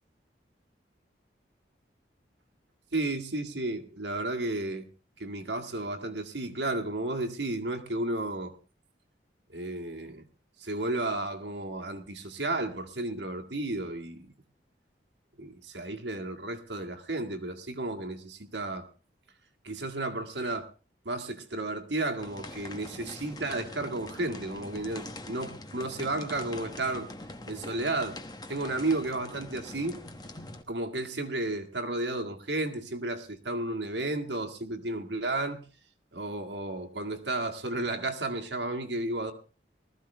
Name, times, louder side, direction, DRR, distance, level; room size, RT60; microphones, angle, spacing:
voice 1, 2.9-4.9 5.2-8.5 9.5-10.3 10.6-14.3 15.4-18.9 19.6-20.7 21.1-27.1 27.5-28.2 28.5-30.0 30.7-35.7 36.1-39.3, right 2 dB, 80° right, 1.9 m, -33 dB
sound 1, 22.2-30.6, left 2 dB, 20° left, 1.0 m, -43 dB
19.0 x 14.0 x 3.4 m
head